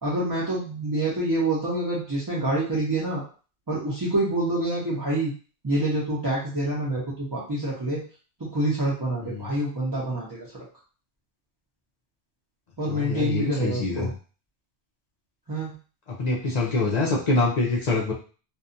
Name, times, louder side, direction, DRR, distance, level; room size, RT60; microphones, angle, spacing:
voice 1, 0.0-3.2 3.7-5.3 5.6-8.0 8.4-10.5 12.8-14.1 15.5-15.8, right 1 dB, 25° right, -8 dB, 0.6 m, -27 dB
voice 2, 9.2-9.6 12.9-14.1 16.1-18.1, left 3 dB, 50° left, -3 dB, 0.5 m, -25 dB
2.6 x 2.3 x 2.5 m, 0.37 s
omnidirectional pair, 1.2 m